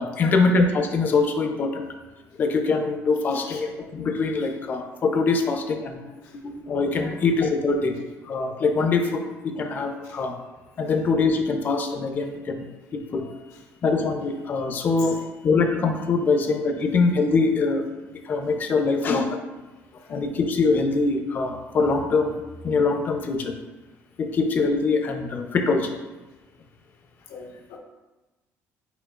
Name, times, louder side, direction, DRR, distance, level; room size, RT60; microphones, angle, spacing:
voice 1, 0.0-1.8 2.4-6.0 6.4-8.0 8.2-10.4 10.8-12.6 12.9-13.3 13.8-15.2 15.4-17.8 18.1-19.3 20.1-23.5 24.2-26.0, left 4 dB, 35° left, 5 dB, 0.5 m, -23 dB
voice 2, 5.9-6.3 7.0-7.1 10.0-10.2 15.0-15.1 18.7-18.8 27.3-27.8, left 5 dB, 85° left, 0 dB, 0.9 m, -41 dB
5.0 x 4.4 x 2.3 m, 1.1 s
cardioid pair, 150°, 5 cm